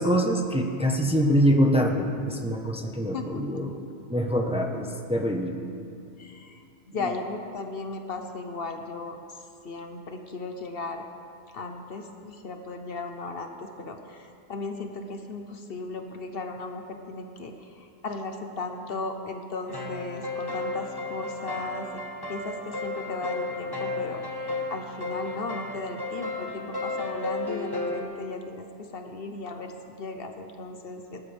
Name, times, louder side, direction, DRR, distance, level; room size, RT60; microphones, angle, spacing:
voice 1, 0.0-3.7 4.1-5.6, equal, 5° right, 1 dB, 0.9 m, -24 dB
voice 2, 3.1-3.6 6.2-11.0 11.5-22.0 22.3-31.3, left 3 dB, 60° left, 5 dB, 1.1 m, -36 dB
sound 1, 19.6-28.0, left 2 dB, 20° left, 1.3 m, -33 dB
19.5 x 12.0 x 3.5 m, 2.4 s
omnidirectional pair, 1.1 m